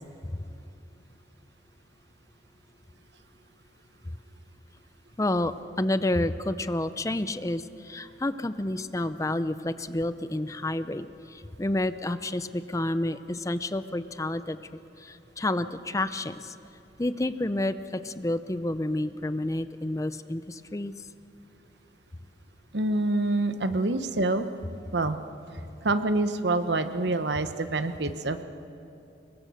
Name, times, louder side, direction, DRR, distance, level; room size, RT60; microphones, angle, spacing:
voice 1, 5.2-14.6 15.0-16.5 17.0-20.9, left 1 dB, 20° left, 12 dB, 0.6 m, -29 dB
voice 2, 22.7-24.5 24.9-25.2 25.8-28.4, right 2 dB, 75° right, 9 dB, 1.1 m, -26 dB
25.5 x 22.0 x 6.4 m, 2.7 s
head